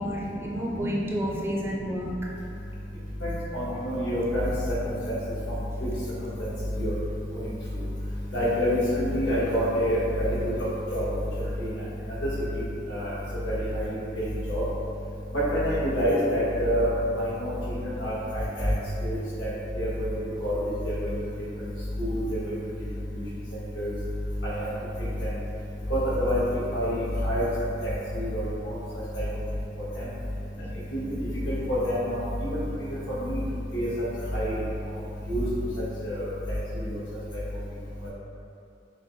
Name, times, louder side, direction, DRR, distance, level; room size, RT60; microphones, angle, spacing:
voice 1, 0.0-2.1, equal, 15° right, -3 dB, 0.4 m, -30 dB
voice 2, 3.2-4.5 4.8-5.1 6.4-6.5 6.8-6.9 7.3-7.5 8.3-10.4 10.9-11.0 11.6-11.7 12.5-12.6 12.9-13.1 13.4-13.9 14.2-14.6 15.5-16.9 17.2-17.5 18.0-18.7 19.0-19.5 19.8-20.1 20.4-21.2 22.0-22.5 23.8-23.9 24.4-24.7 25.2-25.3 25.9-26.4 26.7-27.4 28.1-28.5 29.1-29.2 29.9-30.0 30.9-31.0 31.5-32.2 32.5-32.6 33.2-33.4 33.7-33.9 34.3-34.6 35.3-35.4 36.0-36.3 36.7-37.0, equal, 85° left, -9 dB, 1.4 m, -27 dB
6.1 x 2.1 x 2.6 m, 2.6 s
head